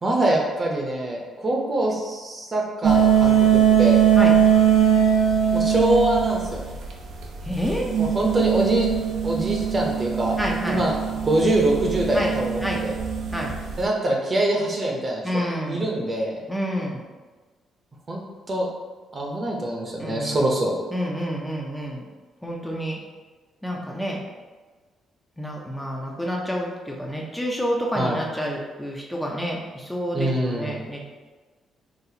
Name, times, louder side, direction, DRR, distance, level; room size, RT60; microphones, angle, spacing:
voice 1, 0.0-4.0 5.5-6.6 8.0-8.9 9.2-10.4 10.7-10.9 11.2-12.9 13.8-15.2 15.7-16.4 18.1-18.2 18.5-18.7 19.1-20.8 28.0-28.2 30.1-30.7, right 1 dB, 35° right, -1 dB, 0.7 m, -24 dB
sound 1, 2.8-13.8, right 9 dB, 80° right, 0.5 m, -21 dB
voice 2, 7.4-7.8 10.4-10.8 12.1-12.3 12.6-12.8 13.3-13.5 15.2-15.9 16.5-17.0 20.0-20.6 20.9-22.0 22.4-23.0 23.6-24.2 25.4-31.0, equal, 5° left, -2 dB, 0.5 m, -28 dB
4.0 x 2.4 x 2.8 m, 1.3 s
cardioid pair, 90°, 0 cm